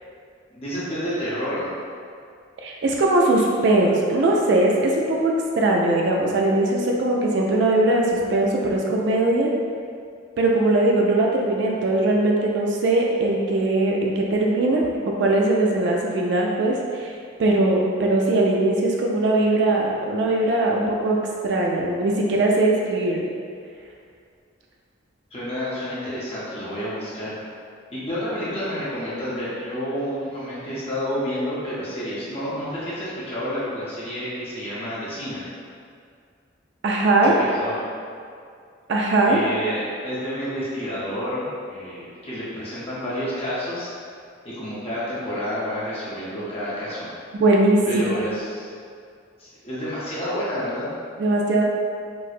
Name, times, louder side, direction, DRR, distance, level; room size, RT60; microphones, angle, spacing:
voice 1, 0.5-1.7 25.3-27.3 27.9-35.5 37.2-37.7 39.3-43.9 44.4-47.1 47.9-48.7 49.4-50.9, equal, 30° left, -9 dB, 0.8 m, -29 dB
voice 2, 2.6-9.5 10.4-14.8 15.2-21.2 21.4-23.3 36.8-37.4 38.9-39.4 47.4-47.8 51.2-51.6, right 2 dB, 60° right, -1 dB, 0.3 m, -20 dB
4.3 x 2.1 x 2.4 m, 2.2 s
head